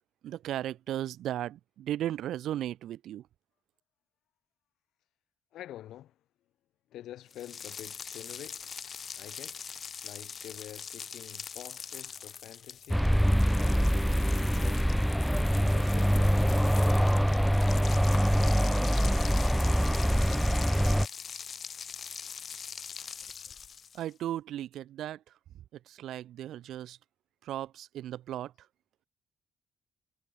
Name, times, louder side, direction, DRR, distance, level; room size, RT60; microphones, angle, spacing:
voice 1, 0.2-3.2 23.9-25.2 25.9-27.0 27.4-28.5, right 12 dB, 70° right, 0.8 m, -36 dB
voice 2, 5.5-6.2 6.9-8.8 9.1-9.8 10.0-14.9 15.5-17.4, left 13 dB, 75° left, 4.2 m, -48 dB
sound 1, 7.3-24.1, left 7 dB, 40° left, 5.9 m, -43 dB
sound 2, 12.9-21.1, equal, ahead, 0.5 m, -24 dB
cardioid pair, 120°, 0 cm